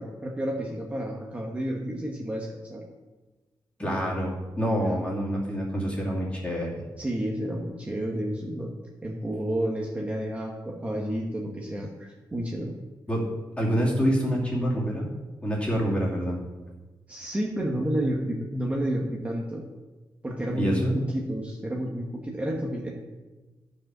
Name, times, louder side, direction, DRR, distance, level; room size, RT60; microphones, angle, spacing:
voice 1, 0.0-2.8 3.8-4.1 4.8-5.0 7.0-8.7 9.0-12.7 17.1-19.6 20.2-22.9, right 1 dB, 15° right, -1 dB, 1.0 m, -30 dB
voice 2, 3.8-6.8 13.1-13.3 13.6-15.1 15.4-16.4 20.5-20.9, equal, 15° left, -4 dB, 2.6 m, -26 dB
10.5 x 5.2 x 6.1 m, 1.2 s
wide cardioid pair, 155°, 8 cm